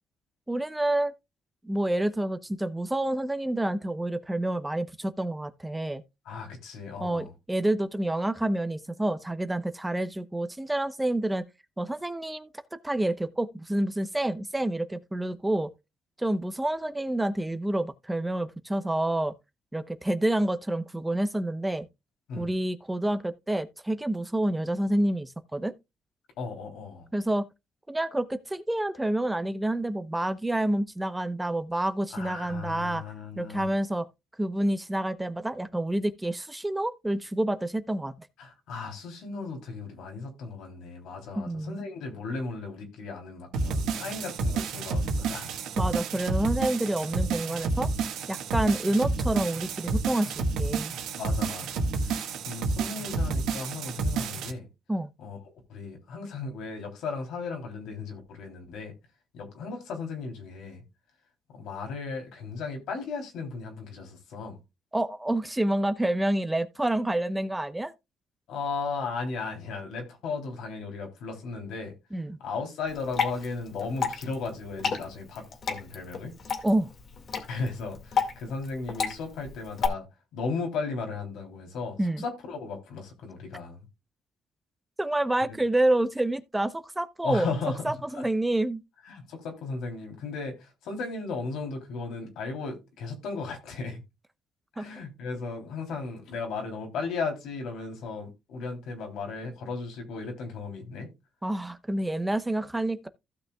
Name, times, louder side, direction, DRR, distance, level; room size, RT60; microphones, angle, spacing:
voice 1, 0.5-1.1 1.6-6.0 7.0-11.4 11.8-12.5 12.8-15.7 16.2-19.3 19.7-21.9 22.4-25.7 27.1-27.4 27.9-33.0 33.4-34.0 34.4-38.1 41.3-41.8 45.8-47.9 48.3-50.9 54.9-55.1 64.9-67.9 72.1-72.4 76.6-76.9 82.0-82.2 85.0-87.5 87.8-88.8 94.8-95.0 101.4-103.1, right 1 dB, 10° right, 0.9 m, -28 dB
voice 2, 6.2-7.3 22.3-22.5 26.4-27.1 32.1-33.7 38.4-45.5 51.2-54.7 55.2-55.4 55.7-58.9 59.3-60.8 61.5-64.6 68.5-71.9 72.4-76.3 77.5-80.0 80.3-83.9 85.5-85.6 87.2-88.2 89.1-94.0 94.8-101.1, left 4 dB, 85° left, 3.3 m, -36 dB
sound 1, 43.5-54.5, right 3 dB, 90° right, 1.7 m, -30 dB
Water / Drip, 72.9-79.9, left 6 dB, 55° left, 2.0 m, -32 dB
15.5 x 6.2 x 2.3 m
cardioid pair, 90°, 0 cm